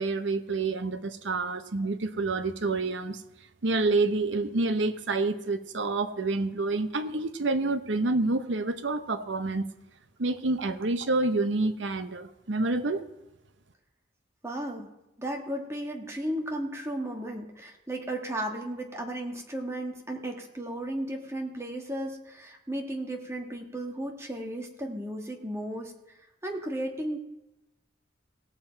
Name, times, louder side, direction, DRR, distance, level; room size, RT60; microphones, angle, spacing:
voice 1, 0.0-3.2 3.6-9.7 10.2-13.0, right 3 dB, 70° right, 10 dB, 0.8 m, -28 dB
voice 2, 14.4-14.9 15.2-25.9 26.4-27.2, right 1 dB, 15° right, 1 dB, 1.4 m, -34 dB
17.5 x 7.3 x 4.5 m, 0.96 s
head